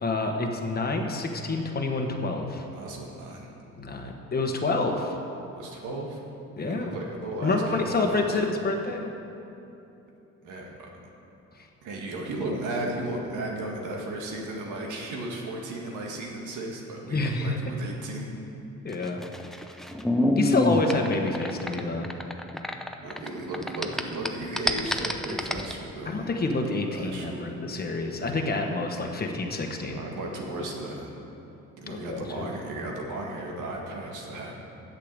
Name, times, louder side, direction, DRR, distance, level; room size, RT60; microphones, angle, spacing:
voice 1, 0.0-2.6 3.8-5.1 6.6-7.0 7.4-9.1 17.1-17.6 18.8-19.2 20.4-22.1 26.0-30.0 31.9-32.5, left 3 dB, 30° left, 3 dB, 1.2 m, -28 dB
voice 2, 2.7-3.5 5.6-6.2 6.8-8.5 10.4-10.9 11.8-18.3 23.0-26.3 26.9-27.5 29.9-31.1 31.8-34.5, right 1 dB, 85° right, -1 dB, 1.8 m, -35 dB
sound 1, 18.9-23.3 23.5-25.7, left 1 dB, ahead, 0.6 m, -27 dB
8.5 x 6.7 x 7.9 m, 2.8 s
cardioid pair, 90°, 30 cm